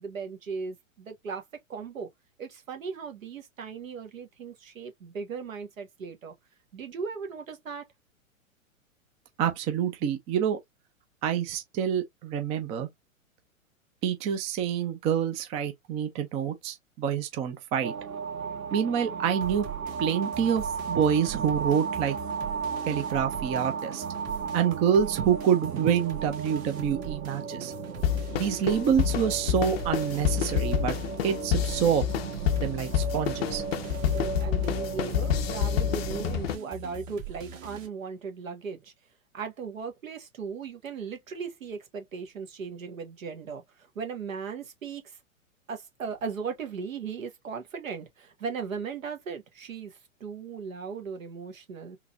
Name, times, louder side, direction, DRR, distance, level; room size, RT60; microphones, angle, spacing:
voice 1, 0.0-1.4 1.7-2.1 2.4-6.3 6.7-7.8 34.1-38.9 39.3-43.6 43.9-45.0 45.7-49.9 50.2-52.0, right 5 dB, 70° right, 1.5 m, -37 dB
voice 2, 9.4-10.6 11.2-12.9 14.0-17.9 18.7-19.7 20.0-22.2 22.9-24.0 24.5-27.7 28.3-31.0 31.2-32.1 32.6-33.6, right 8 dB, 15° right, 0.4 m, -27 dB
sound 1, 17.8-36.4, right 6 dB, 90° right, 0.9 m, -35 dB
sound 2, 19.4-37.9, right 8 dB, 40° right, 1.8 m, -42 dB
sound 3, 28.0-36.6, left 10 dB, 45° left, 0.6 m, -28 dB
3.8 x 2.8 x 2.4 m
figure-of-eight pair, 110°, 41 cm